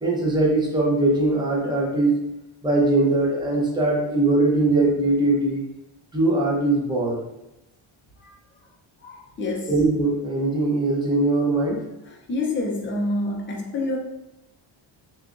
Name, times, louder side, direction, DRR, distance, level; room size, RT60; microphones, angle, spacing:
voice 1, 0.0-2.2 2.6-5.6 6.1-7.2 9.7-11.8, right 2 dB, 10° right, -3 dB, 0.8 m, -21 dB
voice 2, 8.2-8.7 9.0-9.8 12.0-14.0, left 2 dB, 25° left, 0 dB, 0.6 m, -28 dB
6.6 x 2.5 x 2.6 m, 0.90 s
cardioid pair, 160°, 49 cm